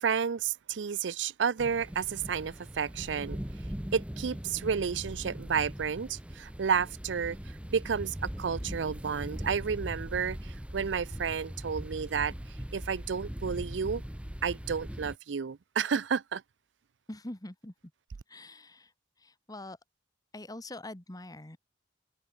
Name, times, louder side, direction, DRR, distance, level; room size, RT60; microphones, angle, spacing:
voice 1, 0.0-3.4 3.9-7.4 7.7-12.3 12.7-14.0 14.4-16.4, right 6 dB, 85° right, 0.5 m, -31 dB
sound 1, 1.6-15.2, equal, 5° right, 0.9 m, -40 dB
voice 2, 17.1-17.7 18.3-18.9 19.2-19.8 20.3-21.6, left 1 dB, 20° left, 1.5 m, -44 dB
head